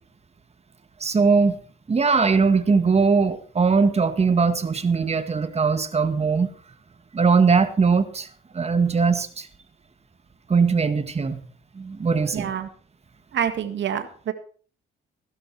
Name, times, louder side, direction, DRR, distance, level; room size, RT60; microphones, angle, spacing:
voice 1, 1.0-1.6 1.9-6.5 7.1-8.3 8.5-9.5 10.5-11.4 11.8-12.5, right 5 dB, 30° right, 10 dB, 1.9 m, -20 dB
voice 2, 12.3-12.7 13.3-14.3, right 9 dB, 65° right, 8 dB, 1.9 m, -27 dB
16.0 x 12.5 x 4.4 m, 0.41 s
cardioid pair, 90°, 20 cm